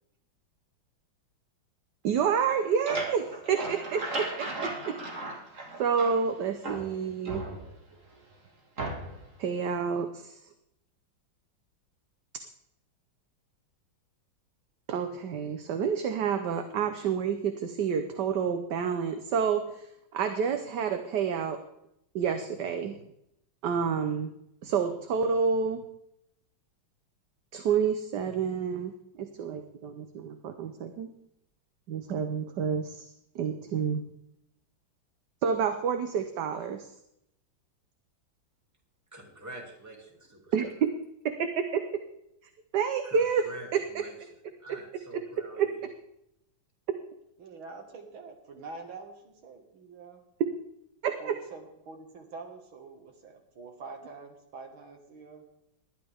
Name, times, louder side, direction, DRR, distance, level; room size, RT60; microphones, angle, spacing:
voice 1, 2.0-4.5 5.8-7.5 9.4-10.4 14.9-21.6 22.1-23.0 23.6-24.3 24.6-25.8 27.5-31.1 31.9-34.0 35.4-36.9 40.5-40.9 41.4-41.8 42.7-43.4 43.7-43.8 45.6-45.7 51.0-51.3, right 6 dB, 60° right, 7 dB, 1.4 m, -29 dB
sound 1, 2.4-6.3 6.6-8.0 8.8-9.3, right 2 dB, 40° right, 2.5 m, -36 dB
voice 2, 39.1-40.7 43.0-45.9, right 1 dB, 10° right, 0 dB, 2.7 m, -46 dB
voice 3, 47.4-50.2 51.2-55.4, right 4 dB, 80° right, 3 dB, 2.7 m, -46 dB
19.5 x 12.5 x 3.6 m, 0.80 s
omnidirectional pair, 2.2 m